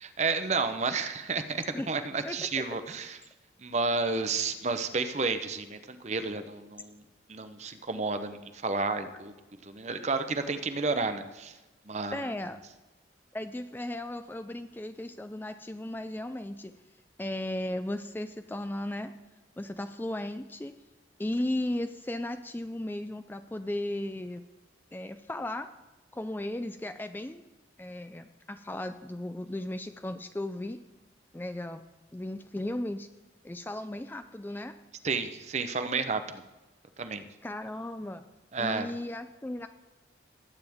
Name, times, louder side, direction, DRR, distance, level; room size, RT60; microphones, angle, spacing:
voice 1, 0.0-3.2 3.6-7.0 7.3-9.4 9.6-11.5 11.9-12.3 35.0-36.4 37.0-37.2 38.5-38.9, right 4 dB, 35° right, 9 dB, 0.7 m, -31 dB
voice 2, 12.1-12.6 13.3-16.7 17.2-19.1 19.6-20.7 21.2-24.4 24.9-25.7 26.1-27.4 27.8-30.8 31.3-31.8 32.1-33.1 33.4-34.8 37.4-38.2 38.6-39.7, left 1 dB, 10° left, 9 dB, 0.3 m, -35 dB
20.0 x 8.9 x 3.5 m, 1.1 s
head